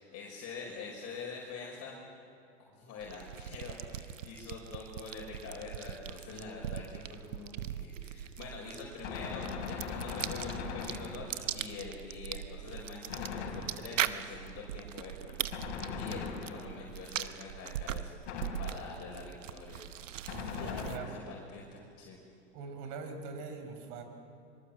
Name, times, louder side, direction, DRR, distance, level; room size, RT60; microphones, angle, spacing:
voice 1, 0.0-2.0 2.7-15.3 15.9-18.1 18.6-19.8 20.5-22.2, left 4 dB, 45° left, -2 dB, 5.4 m, -45 dB
sound 1, 3.0-21.2, right 11 dB, 85° right, 1.0 m, -41 dB
Gunshot gunfire, 9.0-11.5 13.1-14.1 15.5-16.9 18.3-19.1 20.3-21.4, left 6 dB, 70° left, 4.1 m, -40 dB
voice 2, 20.3-21.2 22.5-24.0, right 5 dB, 60° right, 6 dB, 5.2 m, -43 dB
25.0 x 24.0 x 7.6 m, 2.6 s
hypercardioid pair, 95°, 37 cm